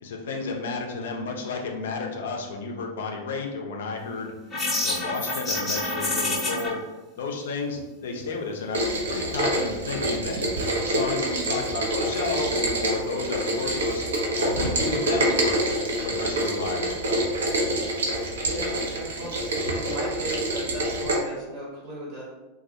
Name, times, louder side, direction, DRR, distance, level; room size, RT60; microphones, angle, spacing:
voice 1, 0.0-4.3 4.8-6.8 7.2-8.8 9.1-10.4 10.8-14.1 14.4-15.6 16.0-17.2, left 4 dB, 60° left, 2 dB, 0.4 m, -32 dB
sound 1, 4.5-6.7, left 2 dB, 20° left, 0.7 m, -27 dB
Rain, 8.7-21.2, right 1 dB, 65° right, 0.5 m, -26 dB
voice 2, 18.1-22.2, right 1 dB, 50° right, -5 dB, 0.8 m, -37 dB
2.3 x 2.1 x 2.6 m, 1.1 s
figure-of-eight pair, 90°, 0 cm